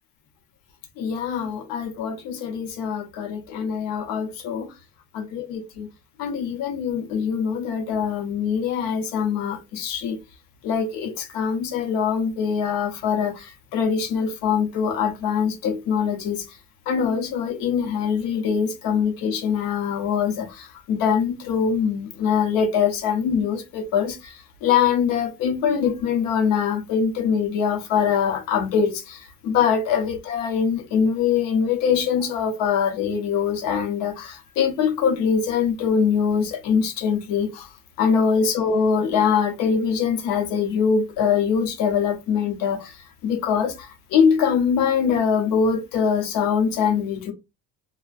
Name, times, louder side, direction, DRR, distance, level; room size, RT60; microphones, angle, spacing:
voice 1, 1.0-4.7 5.1-5.9 6.2-10.2 10.6-16.6 16.9-37.7 38.0-42.9 43.2-47.3, left 7 dB, 90° left, 0.7 m, -23 dB
2.4 x 2.1 x 2.4 m
cardioid pair, 160°, 33 cm